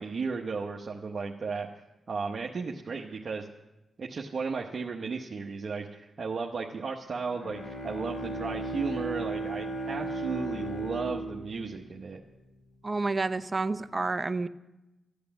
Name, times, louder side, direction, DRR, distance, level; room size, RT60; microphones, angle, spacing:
voice 1, 0.0-1.7 2.1-3.5 4.0-12.2, right 4 dB, 55° right, 0 dB, 1.0 m, -35 dB
Bowed string instrument, 7.3-12.8, right 2 dB, 80° left, 1.6 m, -36 dB
voice 2, 12.8-14.5, right 3 dB, 30° right, 12 dB, 0.7 m, -29 dB
14.0 x 8.5 x 7.1 m, 0.99 s
cardioid pair, 60°, 0 cm